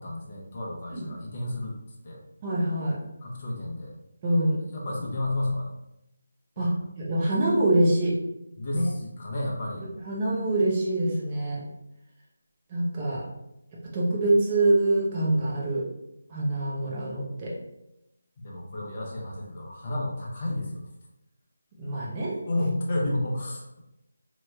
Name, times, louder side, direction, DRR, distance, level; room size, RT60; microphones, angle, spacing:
voice 1, 0.0-1.8 2.0-2.2 3.2-4.0 4.6-5.7 6.6-6.7 8.6-9.9 18.4-20.9 22.5-23.6, left 1 dB, 35° left, -3 dB, 0.7 m, -31 dB
voice 2, 2.4-3.0 4.2-4.6 6.6-6.7 7.0-8.1 8.7-8.8 10.1-11.6 12.7-13.2 13.9-15.8 16.3-17.5 21.8-22.4, right 1 dB, 25° right, -5 dB, 0.6 m, -25 dB
3.0 x 2.3 x 3.2 m, 0.87 s
figure-of-eight pair, 165°, 0 cm